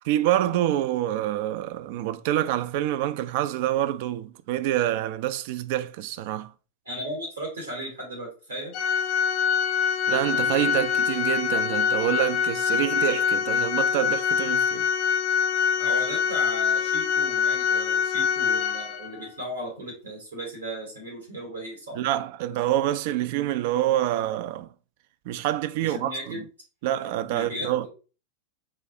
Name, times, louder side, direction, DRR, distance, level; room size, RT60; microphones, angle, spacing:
voice 1, 0.0-6.5 10.1-14.9 22.0-24.7 25.3-26.4 26.8-27.9, right 13 dB, 50° right, 0.3 m, -26 dB
voice 2, 6.9-8.7 15.8-22.0 25.8-26.4 27.3-27.9, equal, 70° right, 1.9 m, -36 dB
Organ, 8.7-19.3, left 7 dB, 40° left, 0.6 m, -24 dB
6.0 x 2.4 x 2.7 m
figure-of-eight pair, 90°, 0 cm